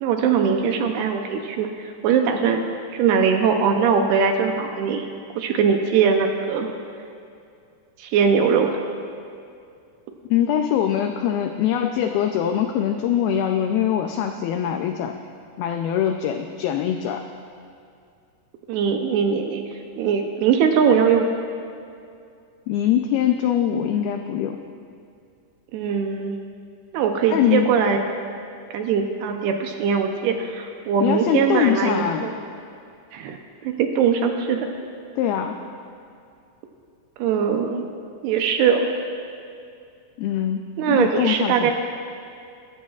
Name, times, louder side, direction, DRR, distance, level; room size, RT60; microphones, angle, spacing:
voice 1, 0.0-2.6 2.9-5.1 5.4-6.7 8.0-8.8 18.7-19.6 20.0-21.3 25.7-26.4 26.9-28.0 28.7-32.3 33.1-33.4 33.6-34.7 37.2-37.8 38.2-38.9 40.8-41.7, right 6 dB, 80° right, 4 dB, 2.6 m, -21 dB
voice 2, 10.3-15.1 15.6-17.2 22.7-24.6 27.3-27.7 31.0-32.3 35.2-35.6 40.2-40.6 40.9-41.7, left 10 dB, 90° left, 5 dB, 2.1 m, -22 dB
21.5 x 14.5 x 2.4 m, 2.4 s
omnidirectional pair, 5.0 m